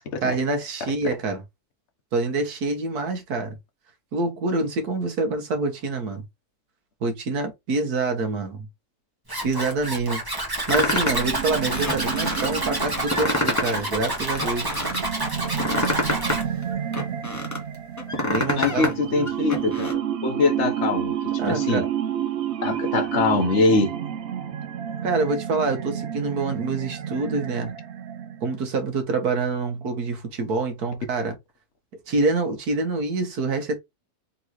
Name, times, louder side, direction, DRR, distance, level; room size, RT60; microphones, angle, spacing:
voice 1, 0.2-1.4 2.1-3.6 4.1-6.2 7.0-8.7 9.4-10.2 10.7-14.7 18.2-18.9 19.2-19.3 21.4-21.9 25.0-27.7 28.4-31.4 32.1-33.8, right 3 dB, 85° right, 1.6 m, -26 dB
Zipper (clothing), 9.3-16.4, right 1 dB, 15° right, 1.4 m, -29 dB
sound 1, 10.7-11.3 11.7-12.5 12.9-13.8 14.1-15.0 15.4-17.6 18.0-18.9 19.3-19.9, left 2 dB, 15° left, 0.8 m, -27 dB
sound 2, 10.8-28.7, right 9 dB, 65° right, 0.7 m, -30 dB
voice 2, 18.5-21.1 21.5-21.8 22.6-23.9, left 3 dB, 55° left, 1.1 m, -23 dB
3.9 x 3.7 x 3.0 m
omnidirectional pair, 1.6 m